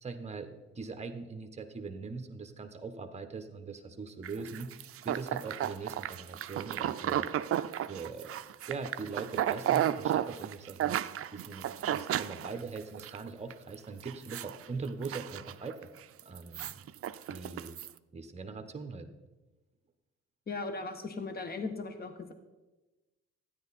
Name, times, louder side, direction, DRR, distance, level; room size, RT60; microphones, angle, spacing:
voice 1, 0.0-7.3 7.9-8.4 8.7-15.9 16.2-16.8 17.3-17.8 18.1-19.1, right 4 dB, 20° right, 7 dB, 1.2 m, -41 dB
sound 1, 4.2-13.2 13.5-13.7 14.0-14.6 14.9-15.8 16.2-17.9, right 11 dB, 50° right, 0.5 m, -33 dB
voice 2, 20.5-22.3, left 3 dB, 30° left, 8 dB, 1.2 m, -38 dB
12.5 x 9.7 x 4.2 m, 1.1 s
cardioid pair, 90°, 30 cm